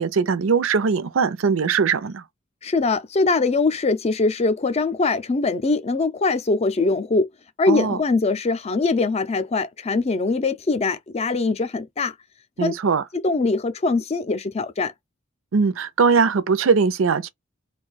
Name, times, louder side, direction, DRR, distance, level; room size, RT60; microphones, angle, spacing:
voice 1, 0.0-2.2 7.7-8.0 12.6-13.0 15.5-17.3, right 5 dB, 80° right, 0.5 m, -20 dB
voice 2, 2.6-7.3 7.6-12.1 12.6-12.7 13.1-14.9, left 3 dB, 30° left, 0.4 m, -22 dB
2.5 x 2.3 x 3.9 m
head